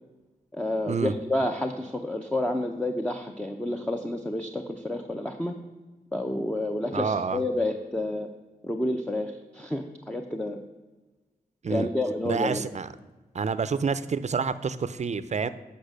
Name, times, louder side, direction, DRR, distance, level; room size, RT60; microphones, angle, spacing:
voice 1, 0.5-5.5 6.1-8.3 8.6-10.6 11.7-12.7, left 1 dB, 5° left, 4 dB, 0.7 m, -29 dB
voice 2, 6.9-7.4 11.6-11.9 12.2-12.9 13.3-15.5, right 5 dB, 50° right, 14 dB, 0.5 m, -28 dB
8.6 x 5.4 x 6.5 m, 1.2 s
cardioid pair, 65°, 16 cm